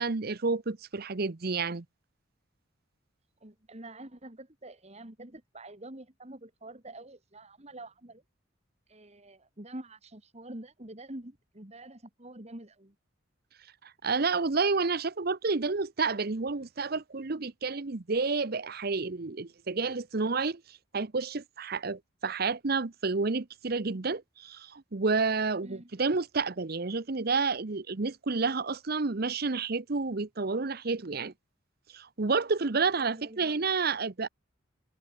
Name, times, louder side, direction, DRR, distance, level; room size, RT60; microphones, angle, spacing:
voice 1, 0.0-1.8 13.8-31.3 31.9-34.3, right 4 dB, 50° right, 0.8 m, -30 dB
voice 2, 3.4-8.2 8.9-12.9 25.6-25.9 33.0-33.6, right 1 dB, 35° right, 2.5 m, -46 dB
head